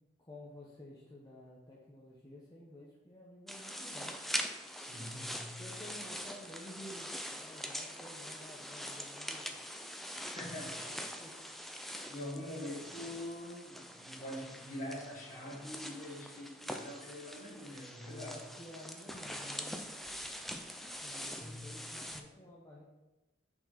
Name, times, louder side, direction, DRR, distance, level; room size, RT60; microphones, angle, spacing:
voice 1, 0.2-4.1 5.6-9.8 10.6-11.4 12.2-12.6 18.1-19.8 21.0-22.8, left 1 dB, 20° left, -5 dB, 0.9 m, -52 dB
sound 1, 3.5-22.2, equal, ahead, 0.4 m, -43 dB
voice 2, 4.7-5.7 10.2-10.9 12.1-18.4 21.2-21.7, left 1 dB, 45° left, -2 dB, 1.7 m, -44 dB
5.9 x 4.3 x 5.7 m, 1.1 s
head